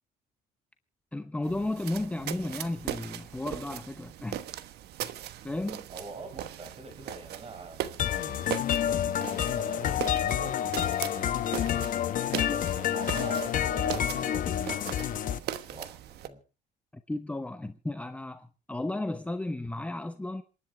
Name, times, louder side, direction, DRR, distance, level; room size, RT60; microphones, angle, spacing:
voice 1, 1.1-4.4 5.0-5.1 5.4-5.8 16.9-20.4, left 2 dB, 10° left, 0.9 m, -34 dB
sound 1, 1.4-16.3, right 12 dB, 75° right, 1.2 m, -39 dB
voice 2, 5.9-16.0 16.2-16.4, right 3 dB, 35° right, 5.2 m, -45 dB
sound 2, 8.0-15.4, left 10 dB, 55° left, 1.0 m, -29 dB
27.5 x 11.0 x 3.4 m
cardioid pair, 110°, 17 cm